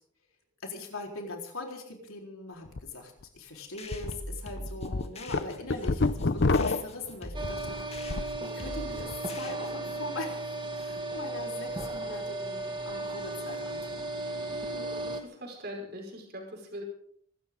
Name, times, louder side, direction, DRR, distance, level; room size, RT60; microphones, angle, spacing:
voice 1, 0.6-14.1, left 2 dB, 90° left, 1 dB, 4.3 m, -41 dB
sound 1, 2.7-2.8 3.2-3.3 3.9-4.1 4.6-8.4 8.7-9.2, left 3 dB, 55° left, 0.7 m, -28 dB
sound 2, 3.8-10.0, left 1 dB, 30° left, 1.7 m, -43 dB
sound 3, 7.3-15.2, right 2 dB, 25° right, 2.1 m, -35 dB
voice 2, 14.7-16.8, equal, 50° right, 1 dB, 5.2 m, -42 dB
25.5 x 13.0 x 3.9 m, 0.63 s
head